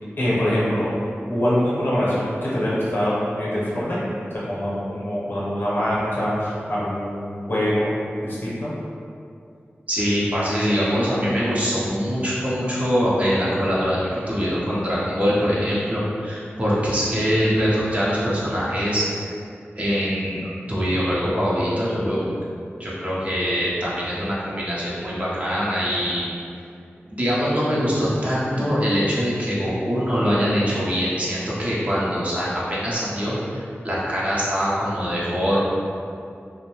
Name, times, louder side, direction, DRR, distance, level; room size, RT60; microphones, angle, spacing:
voice 1, 0.2-0.9 1.3-4.0 4.5-7.9 8.2-8.7, equal, 55° left, -8 dB, 0.8 m, -24 dB
voice 2, 9.9-19.3 19.8-22.3 22.8-26.2 27.1-35.6, equal, 30° right, -8 dB, 0.7 m, -23 dB
2.5 x 2.1 x 3.0 m, 2.5 s
wide cardioid pair, 75°, 4 cm